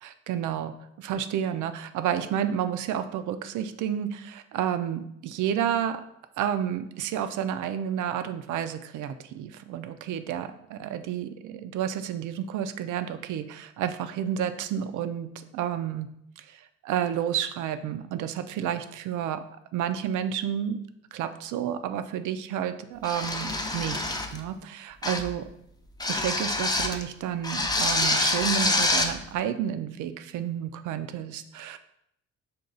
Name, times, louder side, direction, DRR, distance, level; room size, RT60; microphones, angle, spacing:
voice 1, 0.0-6.0 6.4-16.1 16.4-19.4 19.7-20.8 21.1-25.4 26.1-31.8, right 9 dB, 80° right, 10 dB, 0.5 m, -31 dB
sound 1, 23.0-24.4 25.0-25.4 26.0-27.0 27.4-29.1, left 2 dB, 15° left, 0.5 m, -26 dB
5.2 x 2.3 x 3.9 m, 0.76 s
cardioid pair, 90°, 30 cm